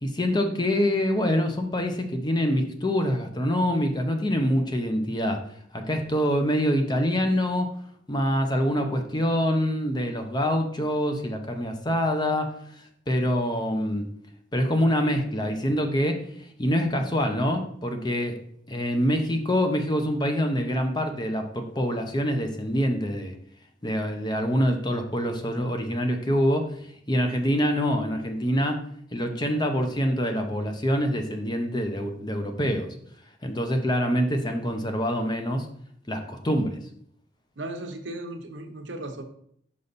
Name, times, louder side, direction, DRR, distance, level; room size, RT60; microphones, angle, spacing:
voice 1, 0.0-5.4 5.7-7.7 8.1-12.5 13.1-14.1 14.5-16.2 16.6-18.3 18.7-23.3 23.8-26.7 27.1-28.8 29.1-32.9 33.4-35.7 36.1-36.8, equal, 20° left, 5 dB, 0.7 m, -25 dB
voice 2, 37.6-39.2, right 1 dB, 70° right, 6 dB, 0.8 m, -36 dB
5.5 x 5.2 x 4.0 m, 0.66 s
head